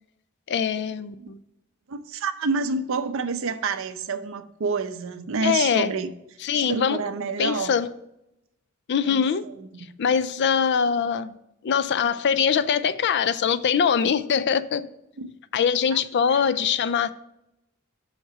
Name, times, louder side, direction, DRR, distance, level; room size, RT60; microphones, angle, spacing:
voice 1, 0.5-1.4 5.4-5.9 6.4-7.0 7.4-7.9 8.9-9.5 10.0-11.3 11.6-14.9 15.5-17.1, left 7 dB, 55° left, 0.4 m, -23 dB
voice 2, 1.9-6.1 6.5-7.8 9.0-9.7 15.2-15.3 15.9-16.0 16.3-16.5, right 4 dB, 65° right, 0.6 m, -28 dB
5.9 x 5.4 x 5.9 m
head